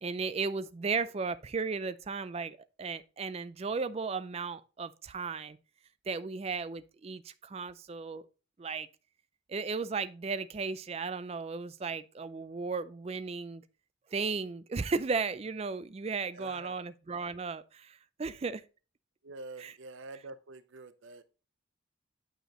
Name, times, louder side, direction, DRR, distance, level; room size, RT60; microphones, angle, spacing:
voice 1, 0.0-5.6 6.1-8.3 8.6-8.9 9.5-13.6 14.1-18.6 19.6-19.7, right 4 dB, 30° right, 0.3 m, -35 dB
voice 2, 16.2-16.8 19.2-21.2, right 3 dB, 75° right, 0.6 m, -47 dB
8.9 x 5.0 x 2.9 m
head